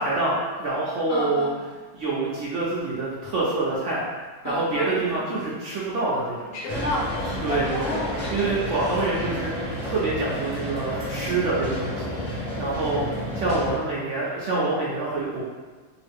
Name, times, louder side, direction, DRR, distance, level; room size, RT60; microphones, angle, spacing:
voice 1, 0.0-1.5 1.9-4.1 4.4-6.6 7.4-8.0 8.3-9.5 9.8-13.1 13.3-15.4, right 2 dB, 60° right, -6 dB, 0.8 m, -26 dB
voice 2, 1.1-1.5 4.4-5.2 6.5-9.1 12.8-13.3, left 1 dB, 70° left, -5 dB, 0.9 m, -32 dB
sound 1, 6.7-13.7, equal, 50° left, 0.3 m, -31 dB
2.8 x 2.4 x 3.4 m, 1.4 s
omnidirectional pair, 1.7 m